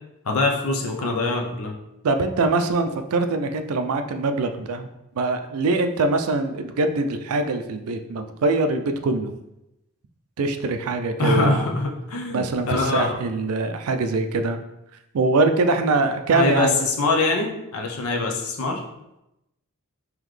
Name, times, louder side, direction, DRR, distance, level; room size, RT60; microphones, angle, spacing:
voice 1, 0.2-1.7 11.2-13.2 16.3-18.8, left 3 dB, 80° left, 2 dB, 0.6 m, -23 dB
voice 2, 2.0-4.9 5.2-9.3 10.4-11.6 12.3-14.6 15.1-16.8, right 3 dB, 85° right, 7 dB, 0.4 m, -23 dB
3.9 x 3.0 x 3.1 m, 0.88 s
head